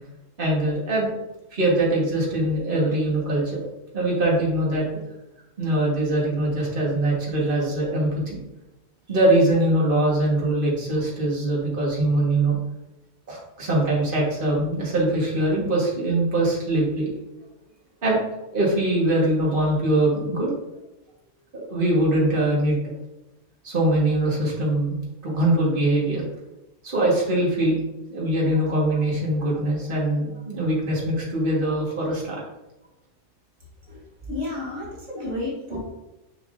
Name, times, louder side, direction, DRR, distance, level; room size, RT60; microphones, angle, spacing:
voice 1, 0.4-1.1 1.5-4.9 5.6-8.4 9.1-12.6 13.3-17.1 18.0-18.2 18.5-20.6 21.5-22.8 23.6-25.0 25.2-26.3 26.8-27.7 28.1-32.4 35.2-35.3 35.7-35.8, right 1 dB, 45° right, -4 dB, 1.8 m, -22 dB
voice 2, 34.3-35.8, left 2 dB, 70° right, -4 dB, 1.8 m, -31 dB
6.6 x 5.9 x 2.6 m, 0.95 s
omnidirectional pair, 1.3 m